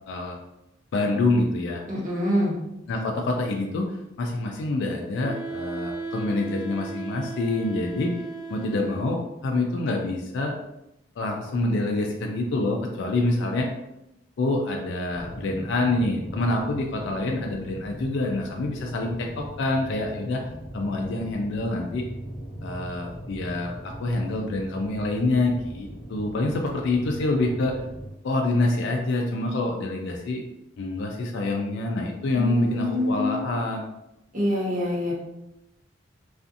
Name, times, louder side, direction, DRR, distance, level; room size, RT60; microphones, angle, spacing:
voice 1, 0.1-0.4 0.9-1.8 2.9-8.1 8.5-10.5 11.2-13.7 14.4-20.4 20.7-22.0 22.6-27.8 28.2-30.4 30.8-33.9, left 2 dB, 65° left, 1 dB, 0.4 m, -26 dB
voice 2, 1.9-2.5 32.3-33.4 34.3-35.1, left 1 dB, 45° right, -7 dB, 1.0 m, -25 dB
Wind instrument woodwind instrument, 5.2-9.3, right 4 dB, 75° right, 0.5 m, -36 dB
sound 1, 15.1-28.1, equal, 5° left, 0.8 m, -39 dB
2.4 x 2.4 x 2.5 m, 0.88 s
head